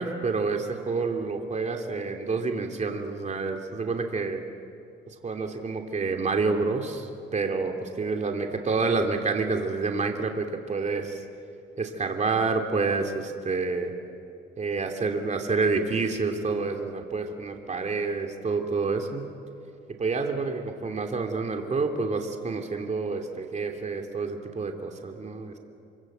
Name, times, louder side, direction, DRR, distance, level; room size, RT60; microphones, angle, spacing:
voice 1, 0.0-4.5 5.2-11.2 11.8-13.9 14.6-19.3 20.0-25.6, right 4 dB, 35° right, 3 dB, 3.0 m, -28 dB
27.0 x 26.5 x 8.0 m, 2.6 s
cardioid pair, 90°, 20 cm